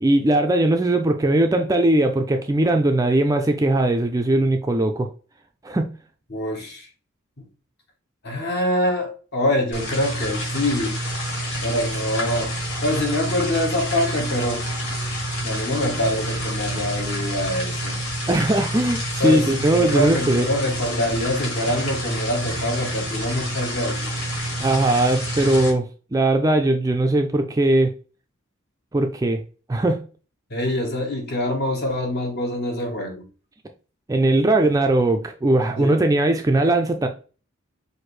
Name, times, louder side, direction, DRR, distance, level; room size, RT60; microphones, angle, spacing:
voice 1, 0.0-5.1 5.6-5.9 18.3-20.5 24.6-27.9 28.9-29.4 29.7-30.0 34.1-37.1, right 1 dB, 15° right, 0.3 m, -19 dB
voice 2, 6.3-6.9 8.2-11.0 11.6-12.6 12.8-14.7 15.4-18.0 19.2-24.1 30.5-33.3 35.8-36.0, left 1 dB, 50° left, 1.2 m, -25 dB
sound 1, 9.7-25.7, equal, 90° left, 1.9 m, -28 dB
5.9 x 2.6 x 3.2 m
head